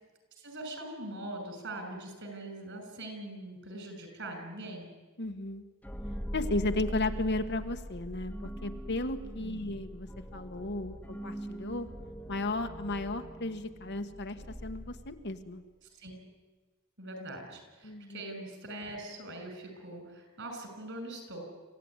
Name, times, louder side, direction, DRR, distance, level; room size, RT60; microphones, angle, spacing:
voice 1, 0.4-4.9 9.4-9.7 16.0-16.1 17.0-21.4, right 1 dB, 60° right, 5 dB, 6.2 m, -42 dB
voice 2, 5.2-5.6 6.3-11.9 12.3-15.6 17.8-18.2, left 2 dB, 55° left, 7 dB, 1.3 m, -34 dB
sound 1, 5.8-15.5, equal, 5° left, 1.2 m, -41 dB
27.0 x 15.0 x 9.7 m, 1.3 s
head